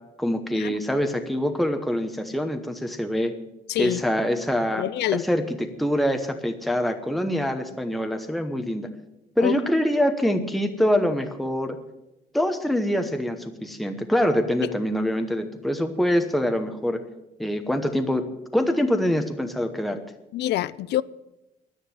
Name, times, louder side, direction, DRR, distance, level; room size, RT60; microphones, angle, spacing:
voice 1, 0.2-3.3 3.8-4.8 5.1-8.9 9.4-11.8 12.3-17.0 17.4-18.2 18.5-20.0, equal, ahead, 6 dB, 1.0 m, -24 dB
voice 2, 3.7-4.0 4.7-5.3 9.4-9.6 20.3-21.0, left 14 dB, 90° left, 18 dB, 0.5 m, -26 dB
11.0 x 9.9 x 9.3 m, 0.93 s
cardioid pair, 150°, 17 cm